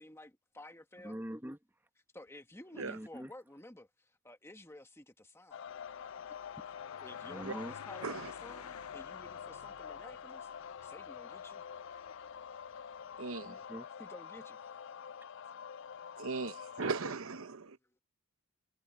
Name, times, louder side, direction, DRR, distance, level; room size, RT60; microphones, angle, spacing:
voice 1, 0.0-1.2 2.1-5.7 7.0-10.5 10.8-11.7 14.0-14.6 17.8-18.0, left 1 dB, 10° left, 1.6 m, -53 dB
voice 2, 1.0-1.6 2.8-3.3 6.6-6.7 7.2-7.7 13.1-14.0 14.9-15.2, equal, 10° right, 1.1 m, -45 dB
sound 1, 5.5-17.1, left 7 dB, 55° left, 0.4 m, -47 dB
sound 2, 5.7-13.9, left 7 dB, 85° left, 0.7 m, -54 dB
voice 3, 13.2-13.6 16.2-17.8, right 4 dB, 65° right, 0.9 m, -38 dB
head